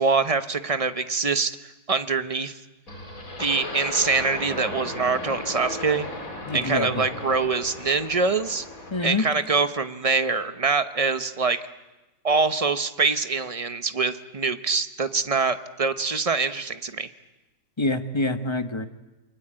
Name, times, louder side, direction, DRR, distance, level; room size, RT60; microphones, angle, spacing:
voice 1, 0.0-1.6 1.9-2.6 3.4-6.1 6.5-8.6 9.0-11.6 12.2-17.1, right 4 dB, 25° right, 10 dB, 0.9 m, -24 dB
sound 1, 2.9-9.2, left 2 dB, 60° left, 4.9 m, -36 dB
voice 2, 6.5-7.1 8.9-9.3 17.8-18.9, left 2 dB, 20° left, 8 dB, 1.2 m, -26 dB
29.0 x 23.0 x 8.9 m, 1.1 s
omnidirectional pair, 1.7 m